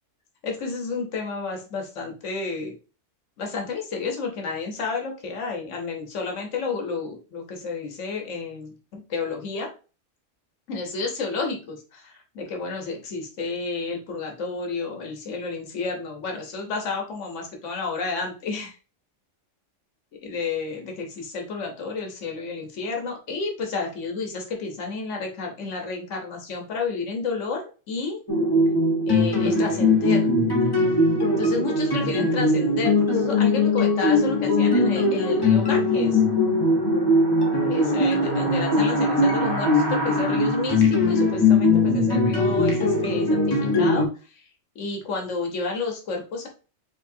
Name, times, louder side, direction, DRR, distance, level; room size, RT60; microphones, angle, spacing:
voice 1, 0.4-2.7 3.4-9.7 10.7-18.7 20.2-28.2 29.1-30.3 31.4-36.2 37.6-44.1 44.3-44.4 44.7-46.5, left 4 dB, 75° left, 2 dB, 1.4 m, -31 dB
sound 1, 28.3-44.0, left 2 dB, 20° left, 1.0 m, -21 dB
4.8 x 3.5 x 2.7 m, 0.35 s
omnidirectional pair, 1.3 m